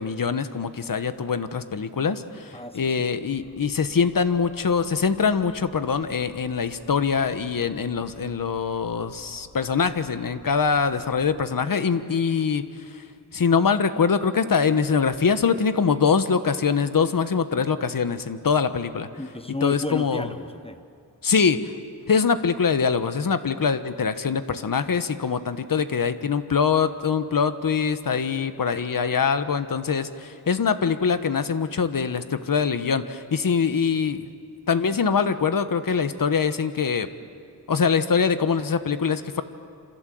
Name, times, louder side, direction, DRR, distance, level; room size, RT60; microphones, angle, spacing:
voice 1, 0.0-13.0 13.3-19.1 19.6-20.3 21.2-21.7 22.1-34.3 34.7-37.1 37.7-39.4, left 6 dB, 50° left, 11 dB, 1.3 m, -23 dB
voice 2, 2.5-3.0 19.2-20.9, left 1 dB, 15° left, 9 dB, 1.0 m, -33 dB
sound 1, 3.3-11.5, left 4 dB, 85° left, 6.2 m, -53 dB
27.5 x 27.0 x 7.8 m, 2.4 s
wide cardioid pair, 130°, 41 cm